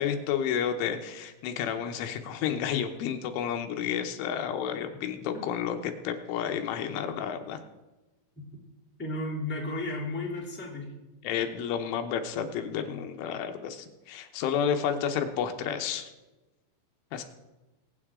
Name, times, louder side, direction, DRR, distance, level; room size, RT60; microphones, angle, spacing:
voice 1, 0.0-7.6 11.2-16.1 17.1-17.2, left 8 dB, 85° left, 6 dB, 3.5 m, -31 dB
voice 2, 9.0-10.9 17.1-17.2, left 2 dB, 5° left, -4 dB, 1.9 m, -33 dB
22.0 x 9.0 x 3.7 m, 1.1 s
omnidirectional pair, 5.6 m